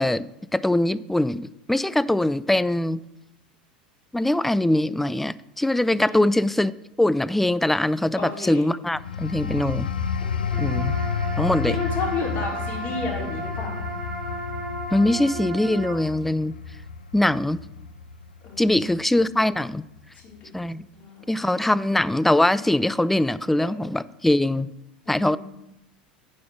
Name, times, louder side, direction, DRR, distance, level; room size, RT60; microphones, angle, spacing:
voice 1, 0.0-3.0 4.1-6.7 7.0-9.9 10.6-10.9 11.4-11.8 14.9-16.6 17.1-17.6 18.6-19.8 20.5-20.9 21.3-24.7 25.1-25.4, left 1 dB, 5° left, 18 dB, 0.3 m, -22 dB
voice 2, 8.2-8.6 10.2-10.5 11.7-13.7 18.4-18.9 20.2-20.5 20.9-21.7 25.1-25.4, left 3 dB, 40° left, -3 dB, 4.1 m, -32 dB
sound 1, 8.9-19.3 19.7-20.0, left 6 dB, 85° left, 0.6 m, -31 dB
sound 2, 10.5-15.9, right 2 dB, 10° right, 2.9 m, -34 dB
9.4 x 5.3 x 6.1 m, 0.86 s
figure-of-eight pair, 80°, 5 cm